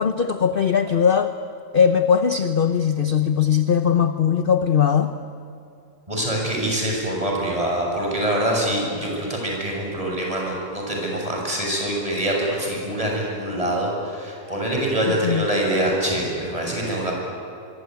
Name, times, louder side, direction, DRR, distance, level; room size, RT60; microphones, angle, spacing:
voice 1, 0.0-1.3 1.7-5.1 15.1-15.5, left 7 dB, 45° left, 9 dB, 0.8 m, -19 dB
voice 2, 6.1-17.1, right 1 dB, 20° right, -1 dB, 7.0 m, -24 dB
25.5 x 23.5 x 9.4 m, 2.6 s
omnidirectional pair, 1.7 m